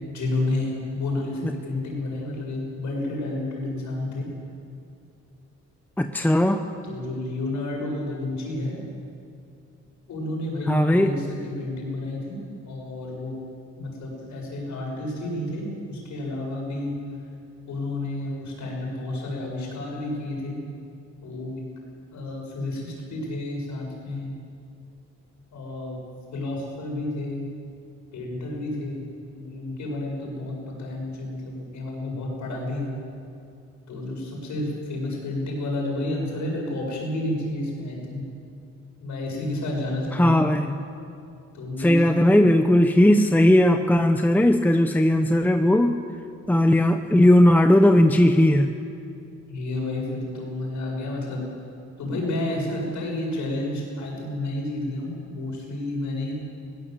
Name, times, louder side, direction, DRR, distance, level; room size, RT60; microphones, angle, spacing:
voice 1, 0.0-4.3 6.8-8.8 10.1-12.4 12.6-13.3 13.8-17.0 17.7-20.6 21.2-21.6 22.1-24.3 25.5-26.0 26.3-27.4 28.1-29.0 29.3-32.9 33.9-38.2 39.0-40.5 41.5-42.2 49.5-51.4 52.0-56.3, left 2 dB, 70° left, -1 dB, 8.0 m, -30 dB
voice 2, 6.0-6.7 10.6-11.2 40.1-40.8 41.8-46.0 46.5-48.7, left 1 dB, 5° left, 6 dB, 0.9 m, -18 dB
22.0 x 17.5 x 8.2 m, 2.5 s
cardioid pair, 90°, 30 cm